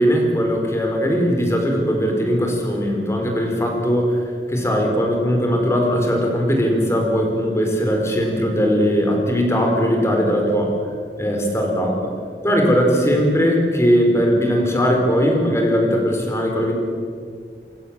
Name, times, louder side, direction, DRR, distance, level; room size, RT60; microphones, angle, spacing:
voice 1, 0.0-10.7 11.2-12.1 12.4-16.7, equal, 15° left, 1 dB, 4.6 m, -19 dB
27.5 x 22.5 x 7.5 m, 2.2 s
head